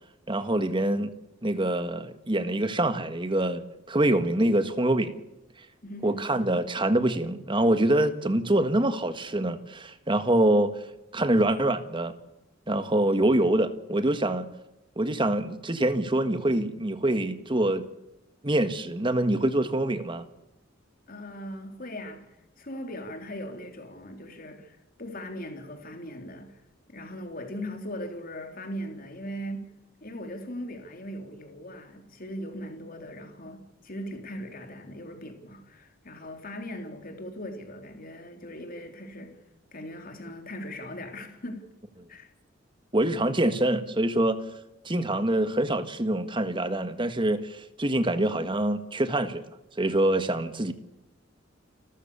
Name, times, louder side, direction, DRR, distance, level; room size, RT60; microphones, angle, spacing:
voice 1, 0.3-1.1 1.4-3.6 3.9-5.1 6.0-10.7 11.1-12.1 12.7-14.5 15.0-17.9 18.4-20.2 42.9-44.4 44.8-49.4 49.8-50.7, right 1 dB, 25° right, 1.6 m, -25 dB
voice 2, 5.8-6.3 21.1-26.6 26.9-29.7 30.0-39.4 39.7-41.6 42.1-42.3, equal, 45° left, 3.6 m, -39 dB
29.5 x 14.0 x 7.0 m
head